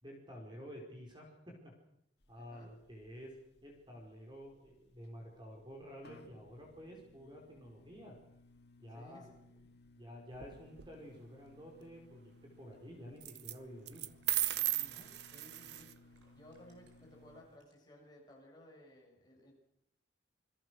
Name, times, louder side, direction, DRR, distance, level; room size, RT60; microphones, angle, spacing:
voice 1, 0.0-1.7 2.3-3.3 3.6-8.2 8.8-9.6 10.0-12.3 12.6-14.1, equal, 25° right, 1 dB, 5.3 m, -51 dB
sound 1, 2.2-17.4, left 2 dB, 60° left, 2.5 m, -63 dB
voice 2, 2.4-2.7 8.9-9.4 14.8-19.5, left 1 dB, 20° left, -1 dB, 7.0 m, -58 dB
sound 2, 10.3-10.9 13.2-13.5 13.9-15.9, right 15 dB, 60° right, 0.8 m, -36 dB
sound 3, 12.7-12.8 13.7-17.1 17.5-18.0 18.3-18.4, right 2 dB, 85° right, 6.9 m, -70 dB
28.5 x 22.0 x 6.5 m, 0.78 s
head